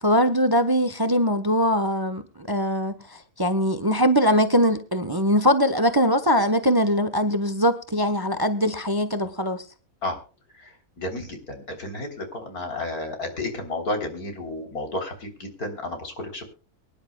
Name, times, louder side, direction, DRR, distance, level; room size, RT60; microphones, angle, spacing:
voice 1, 0.0-9.6, equal, 20° right, 0.9 m, -22 dB
voice 2, 11.0-16.5, left 2 dB, 80° left, 4.0 m, -32 dB
23.5 x 11.0 x 2.3 m
omnidirectional pair, 1.6 m